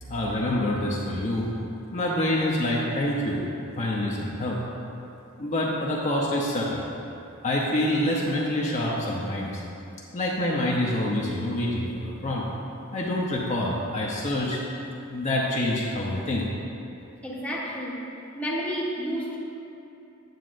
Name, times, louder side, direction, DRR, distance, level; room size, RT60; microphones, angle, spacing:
voice 1, 0.0-1.5 1.9-3.4 3.8-4.6 5.4-6.8 7.4-9.6 10.1-12.4 12.9-14.6 15.1-16.5, left 1 dB, 35° left, -4 dB, 0.7 m, -26 dB
voice 2, 17.2-18.1 18.3-19.4, equal, 5° left, -5 dB, 0.9 m, -30 dB
9.2 x 7.4 x 2.5 m, 2.8 s
head